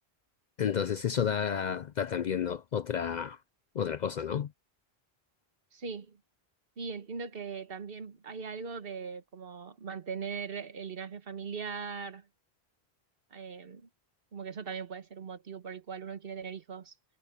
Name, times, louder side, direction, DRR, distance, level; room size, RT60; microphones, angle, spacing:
voice 1, 0.6-3.4 3.8-4.5, left 8 dB, 55° left, 0.5 m, -31 dB
voice 2, 5.7-6.2 6.8-12.2 13.3-13.9 14.3-16.9, right 5 dB, 65° right, 1.4 m, -40 dB
omnidirectional pair, 1.1 m